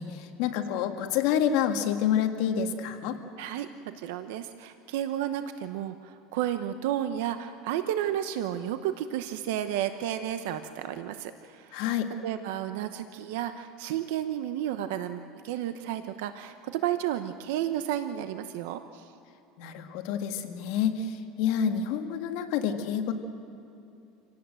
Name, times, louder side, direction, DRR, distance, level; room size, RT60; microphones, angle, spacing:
voice 1, 0.0-3.2 11.7-12.1 19.6-23.1, left 8 dB, 65° left, 5 dB, 1.9 m, -28 dB
voice 2, 3.4-11.8 12.2-19.1, right 11 dB, 80° right, 9 dB, 0.9 m, -32 dB
27.5 x 17.5 x 7.8 m, 2.7 s
supercardioid pair, 145°, 0 cm